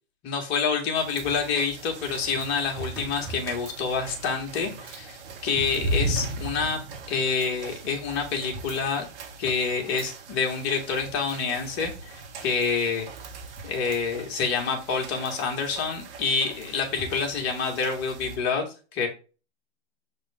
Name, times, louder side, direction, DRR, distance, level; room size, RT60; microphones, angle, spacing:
voice 1, 0.2-9.1 9.4-13.1 13.6-19.1, left 5 dB, 35° left, 1.9 m, -27 dB
sound 1, 0.9-18.4, right 2 dB, 55° right, 2.2 m, -38 dB
sound 2, 2.2-3.6 5.2-6.0 7.8-7.9 8.3-9.1 9.4-9.8 12.9-14.0 14.2-14.3 16.2-17.2, right 1 dB, 5° left, 1.5 m, -43 dB
7.7 x 4.2 x 3.6 m
hypercardioid pair, 135°, 33 cm